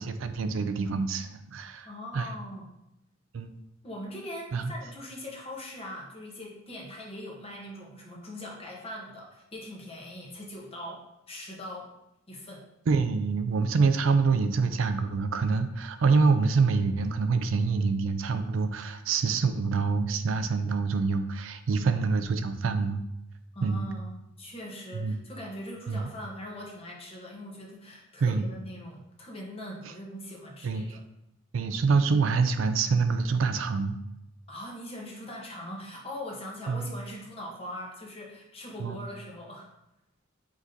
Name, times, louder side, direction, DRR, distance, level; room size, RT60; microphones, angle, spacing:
voice 1, 0.0-1.9 2.1-2.3 3.3-3.6 4.5-4.7 12.9-23.0 23.6-23.9 24.9-25.2 25.9-26.1 28.2-28.4 30.6-30.8 31.5-34.0 36.7-36.8 38.8-39.0, right 4 dB, 75° right, 9 dB, 0.4 m, -26 dB
voice 2, 1.8-2.7 3.8-11.9 12.3-12.7 21.8-21.9 23.5-31.0 34.5-39.7, left 1 dB, 30° left, -2 dB, 1.0 m, -41 dB
5.0 x 3.9 x 2.7 m, 0.85 s
head